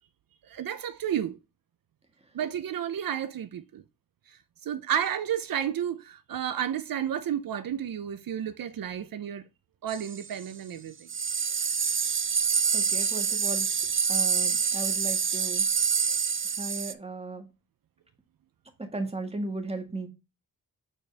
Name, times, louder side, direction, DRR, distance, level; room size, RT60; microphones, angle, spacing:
voice 1, 0.5-1.4 2.3-3.8 4.3-9.4 9.8-11.1, right 9 dB, 80° right, 0.6 m, -32 dB
sound 1, 9.9-10.3 11.1-16.9, right 6 dB, 35° right, 0.6 m, -27 dB
voice 2, 12.7-13.7 14.1-15.7 16.5-17.5 18.8-20.1, right 2 dB, 20° right, 1.7 m, -36 dB
7.2 x 4.3 x 3.4 m
wide cardioid pair, 110°, 34 cm